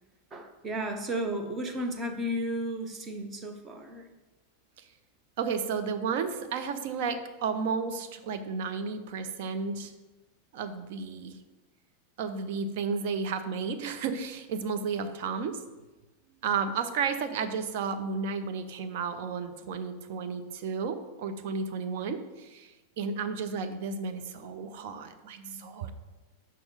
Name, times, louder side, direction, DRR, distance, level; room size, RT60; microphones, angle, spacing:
voice 1, 0.3-4.0, right 1 dB, 20° right, 5 dB, 0.9 m, -33 dB
voice 2, 5.4-9.9 10.5-11.3 12.2-15.6 16.4-25.9, right 5 dB, 50° right, 8 dB, 0.6 m, -32 dB
6.1 x 5.5 x 4.9 m, 1.1 s
figure-of-eight pair, 90°, 0 cm